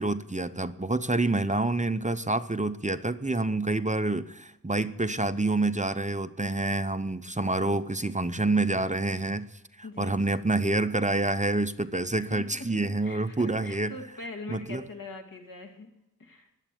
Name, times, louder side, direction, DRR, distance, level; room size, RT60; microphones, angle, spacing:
voice 1, 0.0-9.4 9.8-14.0 14.5-14.8, right 2 dB, 20° right, 11 dB, 0.7 m, -27 dB
voice 2, 9.8-10.2 12.3-12.7 13.0-15.9 16.2-16.5, left 2 dB, 80° left, 3 dB, 2.6 m, -42 dB
21.0 x 8.2 x 7.6 m, 0.85 s
wide cardioid pair, 75°, 33 cm